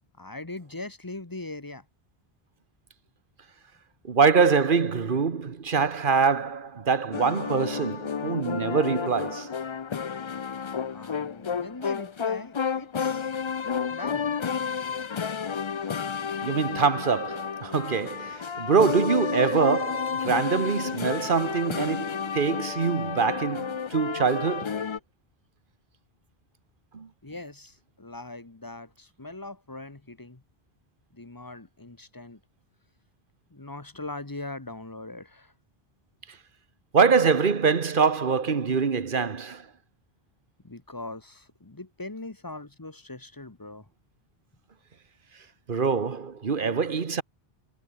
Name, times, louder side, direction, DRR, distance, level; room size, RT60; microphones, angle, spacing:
voice 1, 0.2-1.8 10.9-13.3 13.9-14.3 27.2-30.4 31.1-32.4 33.5-35.5 40.6-43.9, left 2 dB, 20° left, 1.4 m, -40 dB
voice 2, 4.0-9.6 16.4-24.8 26.9-27.1 36.9-39.7 45.7-47.2, right 5 dB, 55° right, 1.4 m, -24 dB
sound 1, 7.1-25.0, left 6 dB, 40° left, 0.4 m, -31 dB
omnidirectional pair, 1.0 m